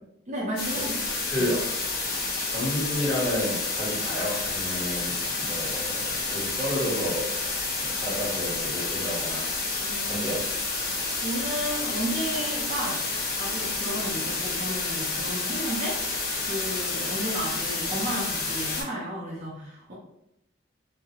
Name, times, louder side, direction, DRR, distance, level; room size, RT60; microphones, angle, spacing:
voice 1, 0.3-0.9 8.1-8.2 9.8-10.3 11.2-13.0 13.4-16.0 16.4-19.9, right 1 dB, 40° right, -7 dB, 0.5 m, -33 dB
sound 1, 0.6-18.8, left 3 dB, 55° left, 0.6 m, -30 dB
voice 2, 1.3-1.7 2.5-7.3 7.8-9.5 10.0-10.4, left 1 dB, 10° left, -10 dB, 1.5 m, -31 dB
2.8 x 2.0 x 2.3 m, 0.80 s
head